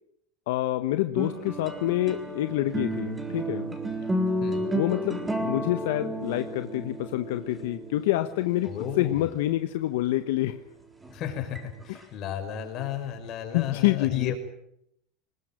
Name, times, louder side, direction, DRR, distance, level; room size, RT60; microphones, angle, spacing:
voice 1, 0.5-3.7 4.7-8.7 9.0-10.6 13.5-14.3, left 15 dB, 75° left, 9 dB, 1.2 m, -27 dB
sound 1, 1.2-10.1 11.0-12.0, right 1 dB, 10° right, 4.1 m, -32 dB
voice 2, 8.6-9.3 11.1-14.3, left 10 dB, 45° left, 6 dB, 5.6 m, -33 dB
21.0 x 20.5 x 9.1 m, 0.77 s
supercardioid pair, 125°, 0 cm